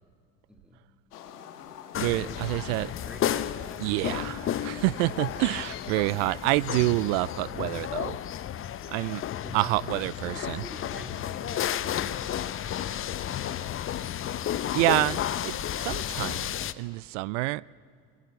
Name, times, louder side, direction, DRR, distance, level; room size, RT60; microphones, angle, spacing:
voice 1, 0.5-0.9 2.0-4.4 8.4-8.7 9.4-14.0, equal, ahead, 2.4 m, -47 dB
sound 1, 1.1-6.9, left 9 dB, 75° left, 1.7 m, -45 dB
sound 2, 1.9-16.7, left 10 dB, 30° left, 0.8 m, -32 dB
voice 2, 2.0-2.9 3.8-8.2 8.9-9.2 9.5-10.6 14.7-17.6, right 22 dB, 50° right, 0.5 m, -28 dB
22.0 x 22.0 x 8.1 m
hypercardioid pair, 80°, 46 cm